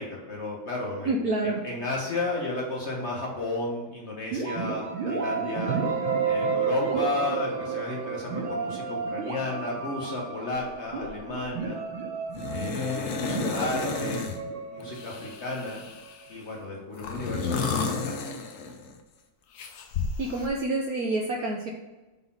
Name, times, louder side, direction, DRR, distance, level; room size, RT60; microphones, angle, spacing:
voice 1, 0.0-5.8 6.2-11.8 12.5-14.2 14.7-15.8 16.3-18.1, left 2 dB, 45° left, -2 dB, 1.1 m, -33 dB
voice 2, 1.0-1.6 20.2-21.7, right 2 dB, 70° right, 1 dB, 0.9 m, -27 dB
sound 1, 4.3-16.0, right 5 dB, 90° right, 1.8 m, -31 dB
sound 2, 10.7-10.8 11.0-11.5 12.3-14.4 14.9-16.3 16.9-19.0 19.5-20.5, left 5 dB, 70° left, 0.8 m, -32 dB
4.9 x 4.0 x 5.5 m, 1.1 s
omnidirectional pair, 2.2 m